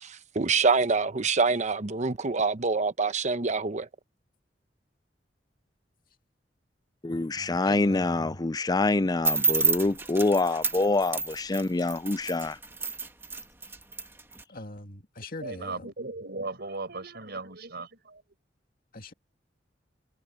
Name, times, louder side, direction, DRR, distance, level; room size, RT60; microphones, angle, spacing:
voice 1, 0.0-3.9, right 4 dB, 40° right, 0.9 m, -26 dB
voice 2, 7.0-12.6, left 2 dB, 20° left, 0.5 m, -26 dB
voice 3, 7.6-8.4 14.5-15.9 18.9-19.1, left 2 dB, 50° left, 2.5 m, -42 dB
sound 1, 9.2-14.4, right 3 dB, 15° right, 1.4 m, -29 dB
voice 4, 15.4-18.2, right 3 dB, 65° right, 4.8 m, -37 dB
head